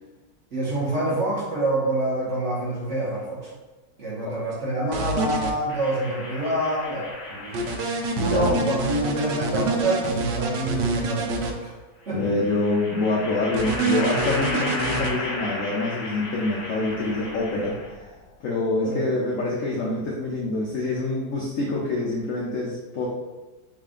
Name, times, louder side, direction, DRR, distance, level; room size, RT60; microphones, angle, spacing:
voice 1, 0.5-3.5 4.0-7.6 8.2-11.7 12.1-12.2 18.8-19.1, right 1 dB, 45° right, -6 dB, 1.3 m, -26 dB
sound 1, 4.9-5.5 7.5-11.5 13.5-15.1, right 3 dB, 75° right, 1.2 m, -26 dB
sound 2, 5.7-8.3 9.5-10.5 12.1-18.1, left 2 dB, 45° left, 1.0 m, -34 dB
voice 2, 8.1-8.7 12.1-17.8 18.4-23.1, left 2 dB, 75° left, -3 dB, 0.7 m, -26 dB
4.9 x 2.5 x 3.7 m, 1.2 s
omnidirectional pair, 2.1 m